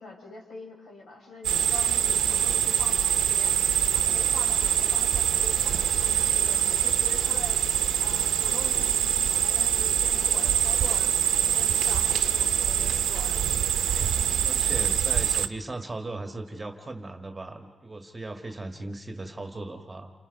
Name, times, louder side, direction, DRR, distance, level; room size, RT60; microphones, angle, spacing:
voice 1, 0.0-3.6 3.9-7.7 8.0-13.5 13.9-14.1, left 2 dB, 60° left, 0 dB, 6.1 m, -44 dB
sound 1, 1.4-15.5, right 9 dB, 90° right, 0.7 m, -24 dB
voice 2, 14.4-20.1, right 2 dB, 15° right, 5 dB, 1.7 m, -37 dB
29.5 x 27.0 x 5.4 m, 1.2 s
wide cardioid pair, 130°, 0 cm